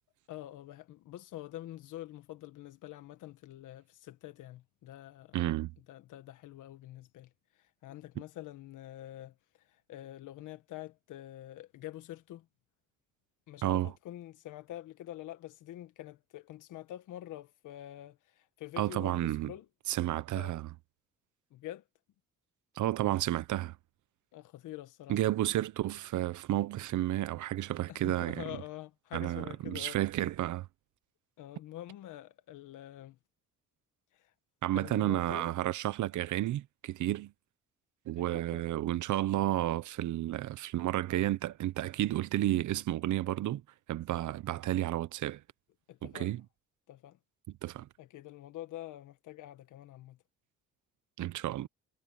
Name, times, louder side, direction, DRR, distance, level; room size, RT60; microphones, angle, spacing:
voice 1, 0.3-5.4 5.9-12.5 13.5-19.7 20.3-20.5 21.5-21.8 24.3-25.2 27.9-30.0 31.4-33.2 34.1-34.3 34.7-35.5 38.2-38.7 45.9-46.4 46.9-47.2 48.0-50.2, left 14 dB, 85° left, 1.6 m, -46 dB
voice 2, 5.3-5.7 13.6-13.9 18.8-19.5 19.9-20.7 22.8-23.8 25.1-28.4 29.1-30.7 34.6-37.3 38.1-43.6 43.9-45.4 46.0-46.4 47.6-47.9 51.2-51.7, right 14 dB, 75° right, 1.0 m, -31 dB
cardioid pair, 90°, 30 cm